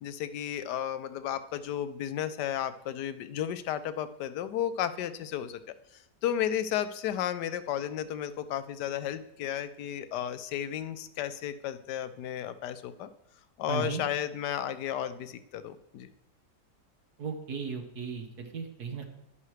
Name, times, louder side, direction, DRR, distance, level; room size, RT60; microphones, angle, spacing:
voice 1, 0.0-5.6 6.2-13.1 13.6-16.1, left 10 dB, 80° left, 12 dB, 1.2 m, -33 dB
voice 2, 13.7-14.0 17.2-19.1, right 5 dB, 65° right, 4 dB, 1.8 m, -36 dB
11.0 x 10.5 x 3.2 m, 0.79 s
omnidirectional pair, 1.8 m